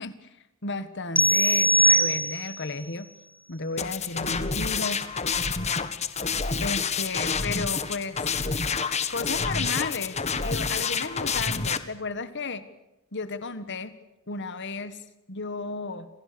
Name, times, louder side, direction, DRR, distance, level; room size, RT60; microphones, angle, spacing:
voice 1, 0.0-3.1 3.5-5.0 6.6-8.3 9.1-12.6 13.1-13.9 14.3-16.1, left 3 dB, 55° left, 12 dB, 1.7 m, -34 dB
sound 1, 1.2-2.7, right 1 dB, 5° left, 1.0 m, -21 dB
sound 2, 3.8-11.8, left 5 dB, 30° left, 1.8 m, -28 dB
29.5 x 27.0 x 7.0 m, 0.93 s
head